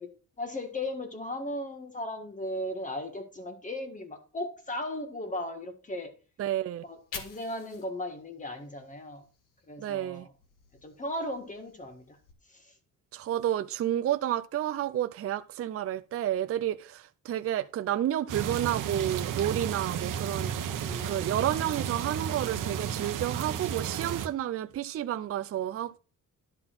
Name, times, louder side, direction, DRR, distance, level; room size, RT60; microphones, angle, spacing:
voice 1, 0.0-6.2 6.8-9.3 9.7-10.3 10.8-12.2 12.5-12.8 20.7-21.1, left 1 dB, 25° left, 1.5 m, -37 dB
voice 2, 6.4-6.8 9.8-10.3 13.1-26.0, right 11 dB, 45° right, 0.5 m, -31 dB
Fire, 6.7-9.9 10.3-12.3, left 5 dB, 80° left, 1.8 m, -49 dB
sound 1, 18.3-24.3, right 8 dB, 75° right, 1.0 m, -33 dB
11.5 x 3.9 x 5.9 m
wide cardioid pair, 160°, 32 cm